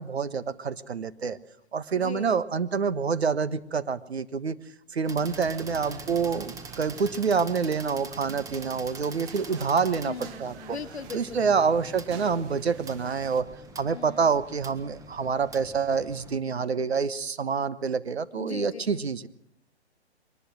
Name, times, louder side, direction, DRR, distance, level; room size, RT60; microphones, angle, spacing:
voice 1, 0.0-1.4 1.7-4.6 4.9-10.1 10.4-10.5 11.1-13.5 13.8-19.3, right 5 dB, 70° right, 13 dB, 1.4 m, -27 dB
voice 2, 2.0-2.4 10.1-11.5 13.9-14.3 18.3-19.1, left 6 dB, 75° left, 13 dB, 1.3 m, -40 dB
sound 1, 5.0-16.4, right 3 dB, 10° right, 1.5 m, -45 dB
sound 2, 5.3-13.4, right 8 dB, 25° right, 1.6 m, -47 dB
23.0 x 19.5 x 6.3 m, 0.69 s
figure-of-eight pair, 125°, 33 cm